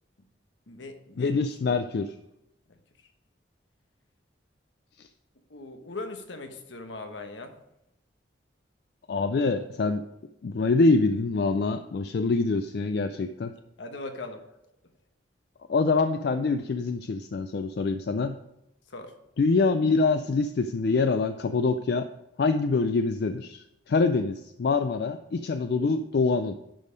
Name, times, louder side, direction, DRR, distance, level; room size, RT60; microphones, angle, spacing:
voice 1, 0.7-1.4 2.7-2.8 5.5-7.6 13.8-14.4 18.9-19.1, left 2 dB, 80° left, 6 dB, 1.1 m, -39 dB
voice 2, 1.2-2.1 5.0-5.1 9.1-10.0 10.4-13.5 15.7-18.4 19.4-22.1 22.4-26.5, left 3 dB, 55° left, 9 dB, 0.4 m, -25 dB
10.5 x 5.4 x 5.1 m, 0.85 s
head